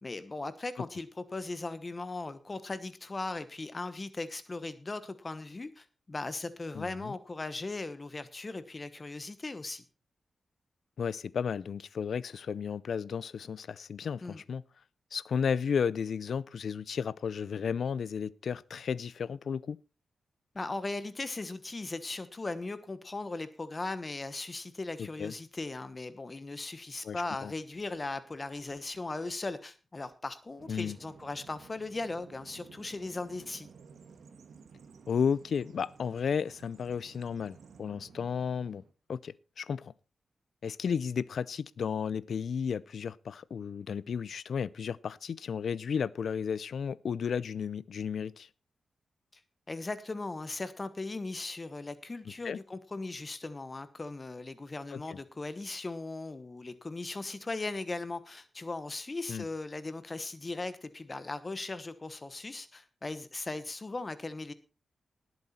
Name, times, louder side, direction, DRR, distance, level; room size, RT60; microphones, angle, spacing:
voice 1, 0.0-9.8 14.2-14.4 20.5-33.7 49.7-64.5, left 3 dB, 30° left, 1.1 m, -38 dB
voice 2, 6.7-7.1 11.0-14.6 15.1-19.8 25.0-25.3 27.0-27.5 30.7-31.0 35.1-38.8 39.1-39.9 40.6-48.5 52.4-52.6 54.9-55.2 59.3-59.5, left 6 dB, 75° left, 0.5 m, -33 dB
Bird vocalization bird call bird song, 30.6-38.9, right 5 dB, 75° right, 1.5 m, -54 dB
18.0 x 8.2 x 4.3 m
cardioid pair, 85°, 0 cm